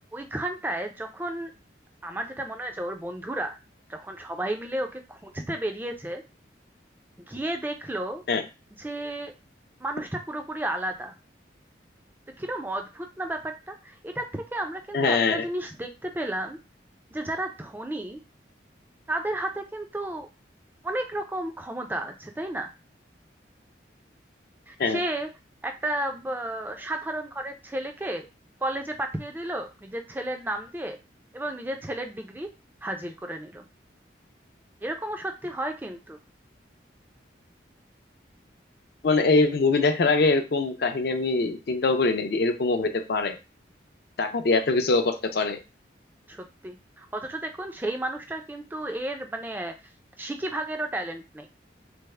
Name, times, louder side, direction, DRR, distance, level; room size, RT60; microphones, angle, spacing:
voice 1, 0.1-1.5 2.0-3.6 3.9-6.2 7.3-8.2 8.8-9.3 9.8-11.1 12.4-16.6 17.1-18.2 19.1-20.3 20.8-22.7 24.7-25.3 25.6-28.3 28.6-31.0 31.3-32.5 32.8-33.6 34.8-36.2 46.3-49.7 50.2-51.5, right 1 dB, 10° right, 5 dB, 0.3 m, -32 dB
voice 2, 14.9-15.4 24.8-25.0 39.0-43.4 44.2-45.6, left 3 dB, 55° left, 7 dB, 0.5 m, -23 dB
3.4 x 2.0 x 3.2 m, 0.28 s
head